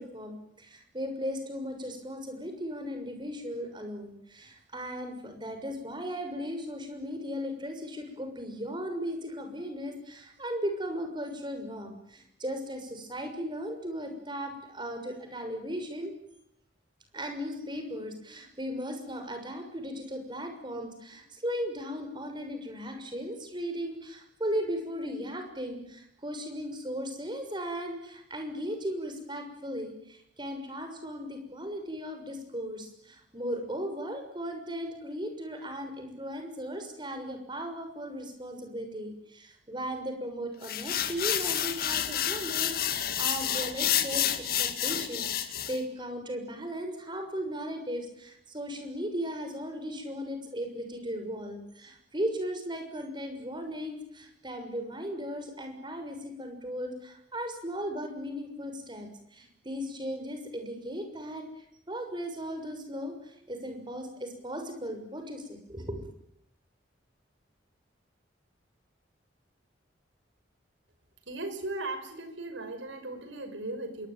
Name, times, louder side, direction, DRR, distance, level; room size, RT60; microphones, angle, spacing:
voice 1, 0.0-16.1 17.1-66.1, equal, 25° right, 6 dB, 6.5 m, -37 dB
sound 1, 40.6-45.8, left 10 dB, 50° left, 2.3 m, -29 dB
voice 2, 71.3-74.1, right 2 dB, 85° right, 8 dB, 5.9 m, -37 dB
27.0 x 23.5 x 9.2 m, 0.74 s
head